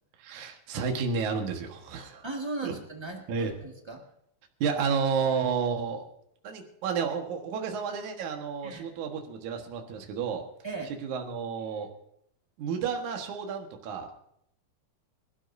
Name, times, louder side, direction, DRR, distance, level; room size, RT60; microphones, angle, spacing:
voice 1, 0.2-2.2 2.6-2.7 3.3-3.5 4.6-6.1 6.4-10.5 10.9-11.9 12.6-14.1, right 6 dB, 65° right, 3 dB, 2.8 m, -31 dB
voice 2, 2.2-4.0 8.6-8.9 10.6-10.9, right 2 dB, 15° right, 0 dB, 0.8 m, -37 dB
25.5 x 13.0 x 2.7 m, 0.73 s
omnidirectional pair, 3.9 m